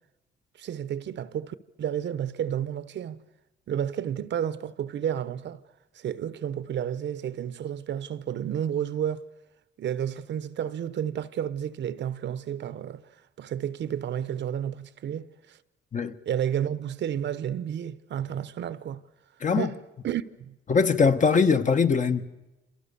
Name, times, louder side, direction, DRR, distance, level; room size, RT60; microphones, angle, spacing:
voice 1, 0.6-3.2 3.7-5.6 5.9-9.2 9.8-13.0 13.4-15.6 16.3-19.0 19.5-19.8 20.0-20.6, right 9 dB, 65° right, 1.1 m, -31 dB
voice 2, 19.4-19.7 20.7-22.2, left 5 dB, 40° left, 1.5 m, -21 dB
27.5 x 27.5 x 7.0 m
cardioid pair, 90°, 20 cm